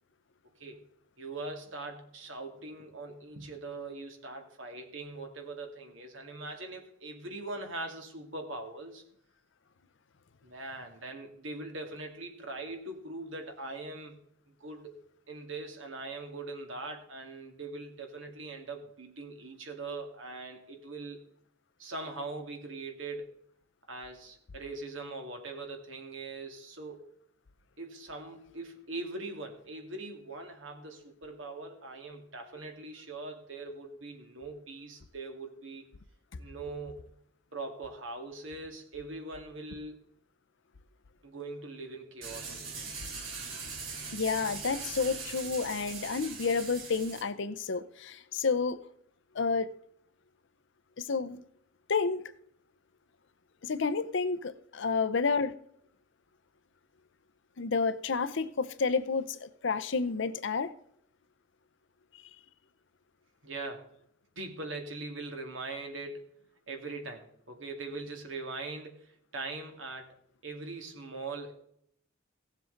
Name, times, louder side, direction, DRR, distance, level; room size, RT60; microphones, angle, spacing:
voice 1, 1.2-9.0 10.4-14.2 14.6-14.9 15.3-21.2 21.8-23.3 23.9-27.1 27.8-35.8 36.4-37.0 37.5-40.0 41.2-42.9 63.4-63.9 64.4-66.3 66.7-70.1 70.4-71.5, right 3 dB, 70° right, 4 dB, 2.1 m, -41 dB
sound 1, 42.2-47.2, right 4 dB, 85° right, 3.2 m, -41 dB
voice 2, 44.1-48.8 49.3-49.7 51.0-51.4 51.9-52.2 53.6-55.5 57.6-60.7, left 4 dB, 65° left, 13 dB, 0.7 m, -30 dB
16.5 x 7.5 x 3.9 m, 0.69 s
head